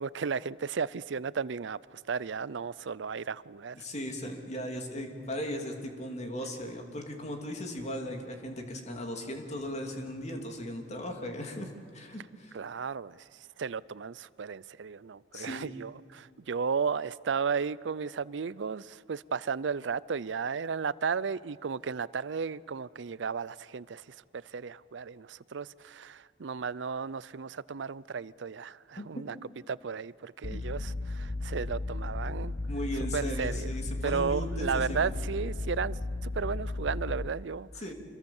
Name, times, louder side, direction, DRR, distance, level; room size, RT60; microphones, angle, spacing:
voice 1, 0.0-3.8 12.5-13.3 13.6-29.4 29.7-32.5 33.1-33.7 34.0-37.7, right 5 dB, 70° right, 0.5 m, -34 dB
voice 2, 3.7-11.7 11.9-12.5 15.3-15.7 29.0-29.1 30.5-30.6 32.7-35.1 37.8-37.9, equal, 40° left, 2.9 m, -37 dB
sound 1, 30.4-37.3, left 2 dB, 55° left, 0.7 m, -35 dB
26.5 x 22.5 x 7.2 m
head